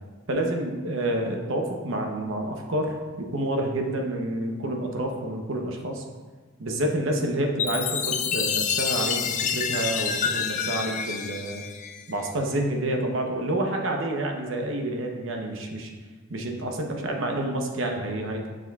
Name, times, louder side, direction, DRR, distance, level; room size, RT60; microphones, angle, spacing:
voice 1, 0.3-6.0 6.6-11.6 12.1-15.9 16.3-18.5, right 1 dB, 70° right, 2 dB, 0.8 m, -28 dB
Chime, 7.6-12.3, left 7 dB, 35° left, 0.3 m, -28 dB
7.0 x 6.1 x 2.4 m, 1.4 s
head